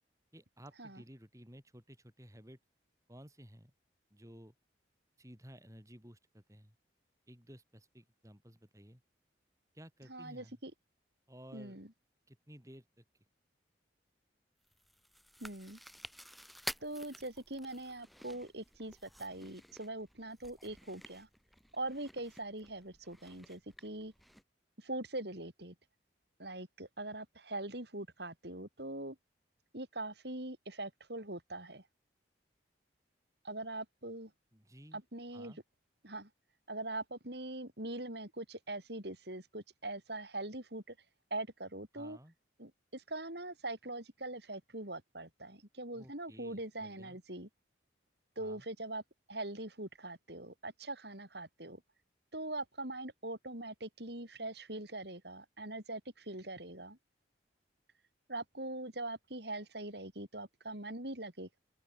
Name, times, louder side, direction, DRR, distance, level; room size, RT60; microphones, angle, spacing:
voice 1, 0.3-2.6 3.1-3.7 4.1-4.5 5.2-6.7 7.3-9.0 9.7-10.6 11.3-11.8 12.3-13.0 34.5-35.0 35.3-35.6 41.9-42.3 45.9-47.2 48.4-48.6, equal, 15° right, 6.3 m, -55 dB
voice 2, 10.1-10.7 11.5-11.9 15.4-15.8 16.8-21.3 21.7-24.1 24.8-25.7 26.4-29.2 29.7-31.8 33.4-34.3 34.9-35.5 36.0-36.3 36.7-41.0 41.3-42.2 42.6-47.5 48.4-49.0 49.3-51.8 52.3-57.0 58.3-61.6, right 2 dB, 60° right, 5.7 m, -42 dB
Chewing mastication, 14.6-24.4, equal, ahead, 2.6 m, -51 dB
open air
head